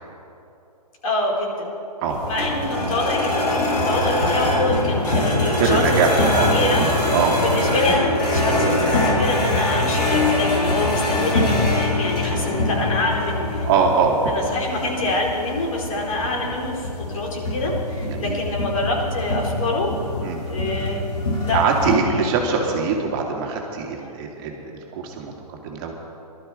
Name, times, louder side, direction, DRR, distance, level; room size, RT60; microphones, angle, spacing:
voice 1, 1.0-1.7 2.3-5.8 6.5-6.8 7.4-13.7 14.2-19.9 20.5-21.1 21.4-22.3 24.0-24.1, left 2 dB, 60° left, -2 dB, 4.2 m, -25 dB
sound 1, 2.1-21.9, left 1 dB, 85° left, 3.9 m, -23 dB
voice 2, 5.6-6.5 6.8-7.4 9.8-10.0 12.3-12.6 13.7-14.3 18.1-18.4 20.2-20.4 21.5-25.9, right 5 dB, 35° right, 0 dB, 2.2 m, -23 dB
19.5 x 12.5 x 4.9 m, 2.8 s
hypercardioid pair, 135°, 20 cm